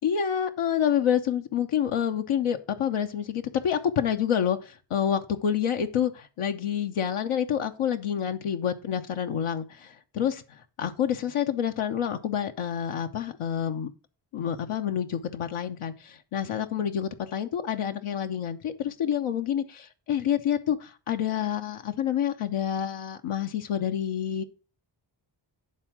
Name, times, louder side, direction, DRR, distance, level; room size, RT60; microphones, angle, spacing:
voice 1, 0.0-10.4 10.8-13.9 14.3-24.4, left 9 dB, 85° left, 5 dB, 0.9 m, -28 dB
9.7 x 3.6 x 5.9 m, 0.34 s
cardioid pair, 45°, 50 cm